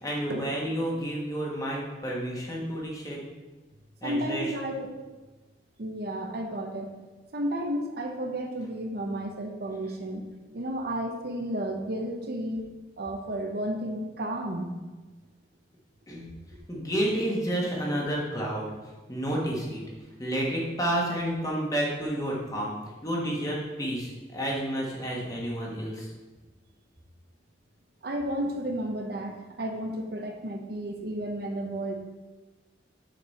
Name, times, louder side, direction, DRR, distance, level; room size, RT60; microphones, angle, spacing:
voice 1, 0.0-3.2 4.0-4.5 16.1-16.3 16.7-18.7 19.1-19.8 20.2-22.7 23.0-26.1, right 1 dB, 20° left, -3 dB, 1.3 m, -30 dB
voice 2, 4.0-4.9 5.8-6.9 7.3-10.2 10.5-12.7 13.0-14.7 28.0-31.9, right 1 dB, 55° right, 3 dB, 0.8 m, -32 dB
6.7 x 5.3 x 4.2 m, 1.2 s
head